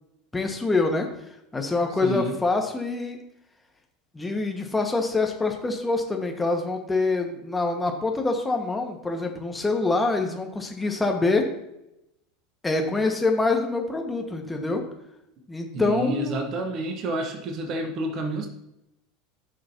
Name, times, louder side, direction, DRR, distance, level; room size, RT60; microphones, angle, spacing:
voice 1, 0.3-1.1 1.5-3.2 4.1-11.5 12.6-14.8 15.5-16.5, left 3 dB, 10° left, 3 dB, 1.6 m, -25 dB
voice 2, 2.0-2.3 15.7-18.5, right 1 dB, 40° right, 4 dB, 1.3 m, -29 dB
15.0 x 6.3 x 2.9 m, 0.86 s
figure-of-eight pair, 75°, 0 cm